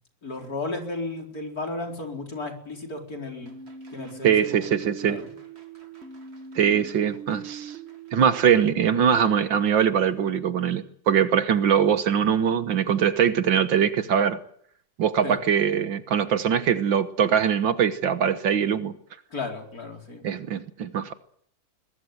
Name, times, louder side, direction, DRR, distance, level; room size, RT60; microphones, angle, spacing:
voice 1, 0.2-3.5 3.9-4.7 5.0-5.3 15.2-15.4 19.3-20.3, left 2 dB, 45° left, 3 dB, 4.9 m, -34 dB
sound 1, 3.4-8.6, right 6 dB, 35° right, 2.2 m, -41 dB
voice 2, 4.2-5.2 6.6-7.7 8.1-14.4 15.0-18.9 20.2-21.1, right 8 dB, 70° right, 12 dB, 1.9 m, -22 dB
22.0 x 21.5 x 8.0 m, 0.65 s
omnidirectional pair, 2.1 m